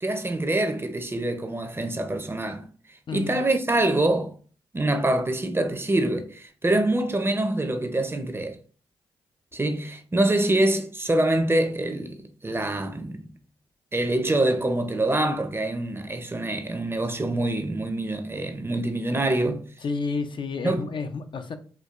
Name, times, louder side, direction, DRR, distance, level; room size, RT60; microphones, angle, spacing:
voice 1, 0.0-2.7 3.1-4.3 4.7-8.6 9.5-13.3 13.9-19.7 20.6-20.9, right 1 dB, 25° right, 0.6 m, -25 dB
voice 2, 3.1-3.4 19.8-21.6, left 4 dB, 55° left, 0.4 m, -30 dB
4.4 x 2.2 x 2.4 m
supercardioid pair, 45°, 10 cm